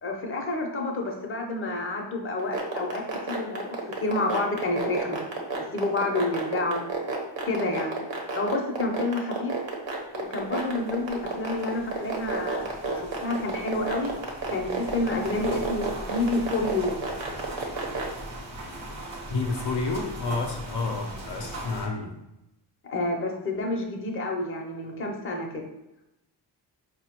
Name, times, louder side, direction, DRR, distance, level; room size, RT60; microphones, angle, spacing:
voice 1, 0.0-3.0 3.3-5.2 5.6-6.8 7.5-8.0 8.4-9.6 10.1-14.1 14.5-16.9 22.8-25.7, left 2 dB, 30° left, 1 dB, 0.7 m, -29 dB
sound 1, 2.4-18.0, right 4 dB, 70° right, 1.0 m, -30 dB
sound 2, 10.4-21.9, right 1 dB, 35° right, 0.9 m, -40 dB
voice 2, 19.3-22.2, left 3 dB, 65° left, 2 dB, 0.6 m, -30 dB
4.4 x 2.2 x 2.9 m, 0.90 s
cardioid pair, 75°, 45 cm